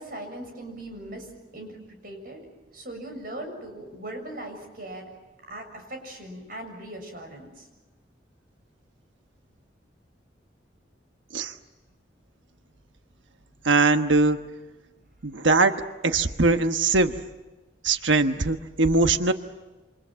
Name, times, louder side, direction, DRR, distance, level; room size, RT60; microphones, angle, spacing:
voice 1, 0.0-2.4 2.7-5.1 5.5-7.7, right 1 dB, 50° right, 4 dB, 7.2 m, -39 dB
voice 2, 13.6-14.4 15.2-15.7 16.0-17.1 17.8-19.3, right 3 dB, 90° right, 8 dB, 1.2 m, -21 dB
28.5 x 27.0 x 7.6 m, 1.2 s
head